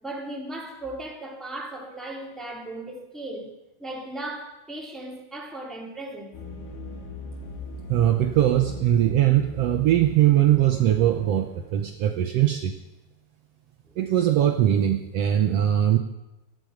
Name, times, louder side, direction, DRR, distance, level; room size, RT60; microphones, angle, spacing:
voice 1, 0.0-3.5 3.8-6.4, right 1 dB, ahead, 2.0 m, -36 dB
sound 1, 6.3-11.8, left 2 dB, 75° left, 4.0 m, -40 dB
voice 2, 7.9-12.7 14.0-16.0, right 12 dB, 85° right, 1.4 m, -21 dB
19.0 x 14.0 x 5.1 m
omnidirectional pair, 4.0 m